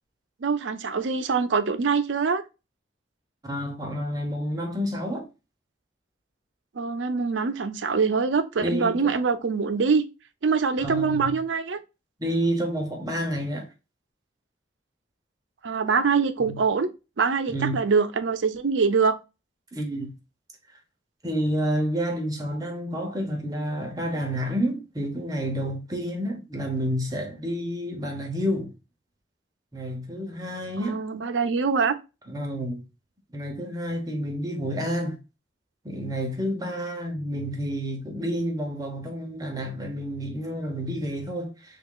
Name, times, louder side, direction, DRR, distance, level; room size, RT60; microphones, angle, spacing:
voice 1, 0.4-2.4 6.8-10.0 10.4-11.8 15.6-16.9 17.2-19.2 30.8-32.0, right 5 dB, 85° right, 0.5 m, -24 dB
voice 2, 3.4-5.3 8.6-9.1 10.8-11.4 12.2-13.7 16.4-16.6 17.5-17.8 19.7-20.1 20.7-20.8 21.2-28.7 29.7-31.1 32.3-32.8 33.3-35.2 35.8-41.8, equal, 20° right, 0.6 m, -29 dB
3.3 x 2.4 x 3.6 m
head